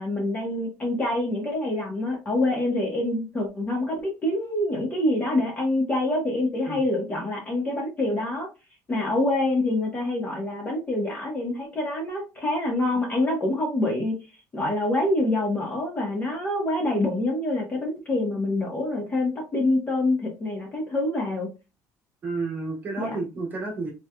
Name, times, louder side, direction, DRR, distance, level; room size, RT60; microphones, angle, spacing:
voice 1, 0.0-8.5 8.9-14.1 14.5-21.5 23.0-23.1, left 1 dB, 25° left, 0 dB, 1.3 m, -26 dB
voice 2, 22.2-23.9, right 3 dB, 30° right, -1 dB, 1.5 m, -31 dB
4.1 x 3.4 x 2.3 m, 0.28 s
cardioid pair, 145°, 7 cm